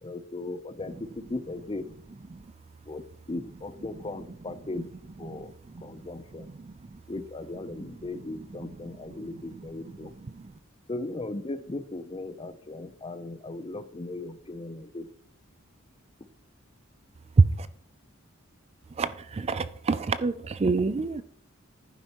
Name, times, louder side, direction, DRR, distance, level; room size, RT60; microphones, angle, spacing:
voice 1, 0.0-1.9 2.9-6.5 7.1-10.1 10.9-15.1, left 2 dB, 25° left, 12 dB, 0.6 m, -37 dB
voice 2, 19.0-21.2, right 4 dB, 30° right, 14 dB, 0.4 m, -25 dB
11.0 x 9.7 x 3.0 m, 0.67 s
head